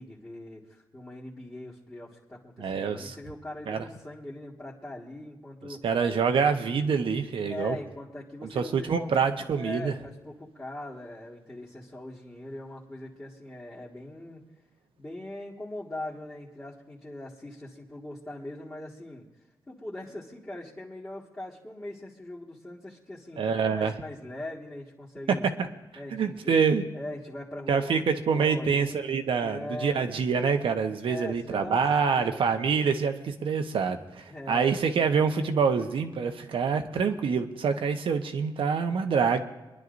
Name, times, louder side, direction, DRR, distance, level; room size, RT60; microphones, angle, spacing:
voice 1, 0.0-5.8 7.5-9.1 9.5-14.4 15.0-19.3 19.7-25.4 26.0-26.5 26.9-28.0 28.3-30.1 31.0-32.8 34.3-34.9, left 1 dB, 20° left, -7 dB, 1.8 m, -41 dB
voice 2, 2.6-3.2 3.7-3.9 5.8-7.8 8.5-9.9 23.4-23.9 25.3-25.4 26.1-26.8 27.7-39.4, right 6 dB, 80° right, 6 dB, 1.0 m, -26 dB
25.5 x 11.0 x 2.6 m, 1.1 s
wide cardioid pair, 115°, 9 cm